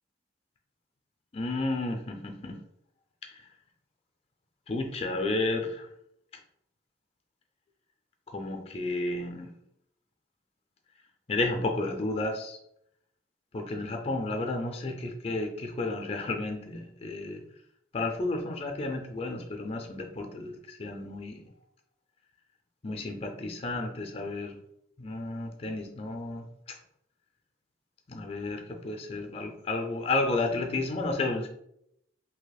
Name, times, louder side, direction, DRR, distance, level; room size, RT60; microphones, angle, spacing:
voice 1, 1.3-2.5 4.7-5.9 8.3-9.5 11.3-12.6 13.5-17.4 17.9-21.4 22.8-24.5 25.0-26.5 28.1-31.5, left 2 dB, 30° left, 4 dB, 0.5 m, -32 dB
2.9 x 2.7 x 4.0 m, 0.76 s
head